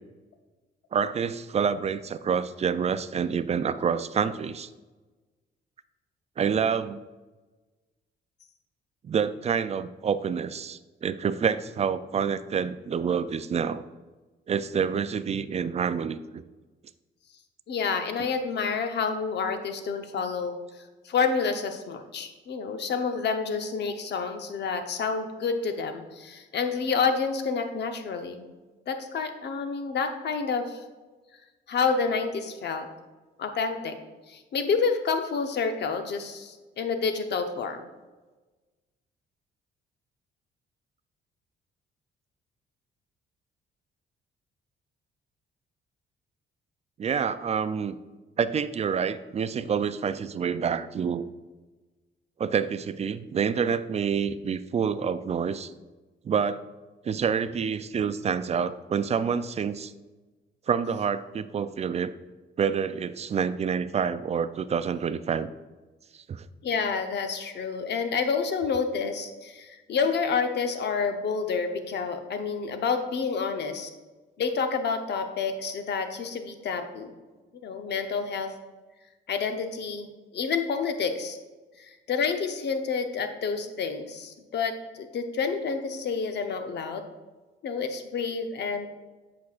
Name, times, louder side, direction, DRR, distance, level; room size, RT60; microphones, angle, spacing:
voice 1, 0.9-4.7 6.4-7.0 9.0-13.8 14.5-16.4 47.0-48.0 48.4-51.3 52.4-55.7 56.2-56.6 57.1-59.9 60.7-62.1 62.6-65.5 66.3-66.5, right 6 dB, 35° right, 14 dB, 0.3 m, -27 dB
voice 2, 17.7-28.5 28.9-30.8 31.7-32.9 33.4-34.0 34.3-37.9 66.6-73.9 74.4-77.1 77.6-78.5 79.3-81.4 81.8-87.0 87.6-88.9, left 5 dB, 60° left, 7 dB, 0.8 m, -29 dB
8.3 x 6.3 x 2.4 m, 1.2 s
cardioid pair, 90°, 20 cm